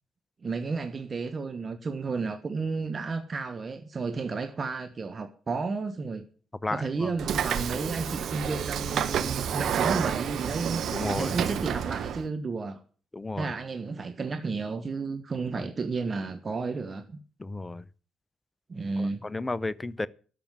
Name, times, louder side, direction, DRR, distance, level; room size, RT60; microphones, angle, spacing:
voice 1, 0.4-6.2 6.7-10.8 11.2-12.8 13.4-17.2 18.7-19.3, right 4 dB, 40° right, 1.2 m, -32 dB
voice 2, 6.6-7.1 10.9-11.3 13.1-13.5 15.5-15.6 17.4-17.8 19.0-20.1, left 2 dB, 20° left, 0.7 m, -33 dB
Train / Sliding door, 7.2-12.2, right 8 dB, 60° right, 1.1 m, -29 dB
11.5 x 7.2 x 9.6 m
figure-of-eight pair, 45°, 0 cm